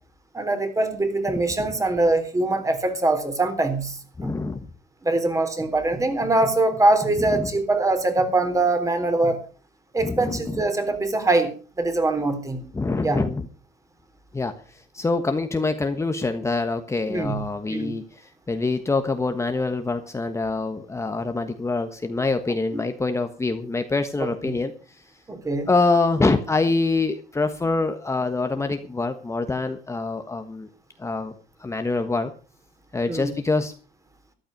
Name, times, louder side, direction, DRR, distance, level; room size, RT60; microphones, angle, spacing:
voice 1, 0.3-4.3 5.0-9.4 9.9-12.7 13.0-13.2 17.1-17.4 17.7-17.9 22.7-22.8 25.3-25.7 33.1-33.3, right 2 dB, 20° right, 8 dB, 3.6 m, -23 dB
voice 2, 1.3-1.7 4.2-4.6 7.1-7.5 10.0-10.6 12.7-13.5 14.3-25.0 25.7-30.7 31.0-31.3 31.6-32.3 32.9-33.7, left 3 dB, 15° left, 7 dB, 1.3 m, -25 dB
14.0 x 11.5 x 5.3 m, 0.37 s
cardioid pair, 110°, 17 cm